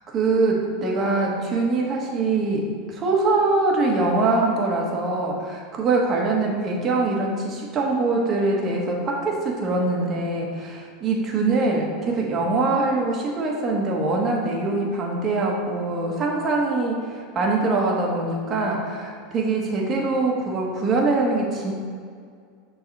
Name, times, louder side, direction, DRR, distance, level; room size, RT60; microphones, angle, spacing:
voice 1, 0.1-21.7, right 3 dB, 30° right, -2 dB, 1.5 m, -23 dB
6.7 x 4.0 x 5.5 m, 2.1 s
supercardioid pair, 135°, 0 cm